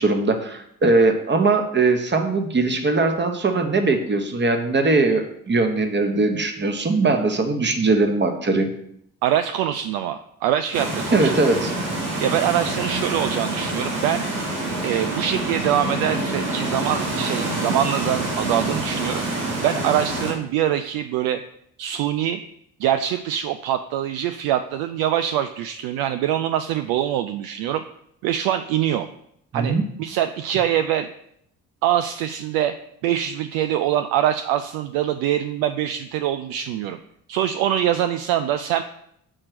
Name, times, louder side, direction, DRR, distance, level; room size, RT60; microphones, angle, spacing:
voice 1, 0.0-8.7 11.1-11.7 29.5-29.8, right 3 dB, 25° right, 6 dB, 1.1 m, -20 dB
voice 2, 9.2-11.3 12.2-14.3 14.8-19.2 19.6-21.4 21.8-22.4 22.8-27.8 28.2-29.1 29.5-31.1 31.8-32.7 33.0-37.0 37.3-38.8, right 11 dB, 55° right, 9 dB, 0.5 m, -24 dB
Ambiance Wind Forest Moderate Loop Stereo, 10.7-20.3, right 2 dB, 80° right, 3.3 m, -26 dB
6.4 x 4.4 x 5.9 m, 0.73 s
figure-of-eight pair, 45°, 43 cm